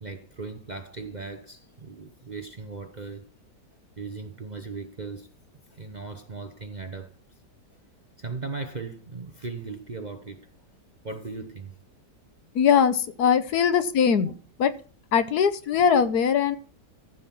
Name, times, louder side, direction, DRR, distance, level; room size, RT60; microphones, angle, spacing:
voice 1, 0.0-3.3 4.0-5.3 5.7-7.1 8.2-10.5 11.0-11.7 13.3-13.4, right 4 dB, 35° right, 0.8 m, -38 dB
voice 2, 12.5-14.3 14.6-14.7 15.1-16.6, left 7 dB, 70° left, 1.4 m, -21 dB
14.5 x 5.5 x 5.9 m
omnidirectional pair, 1.8 m